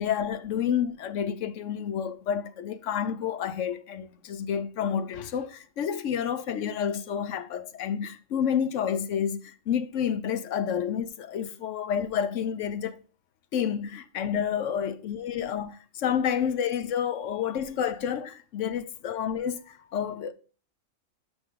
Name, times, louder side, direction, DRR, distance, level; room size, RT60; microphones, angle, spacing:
voice 1, 0.0-13.0 13.5-20.3, left 8 dB, 75° left, 1.1 m, -29 dB
13.5 x 4.9 x 3.7 m
omnidirectional pair, 1.3 m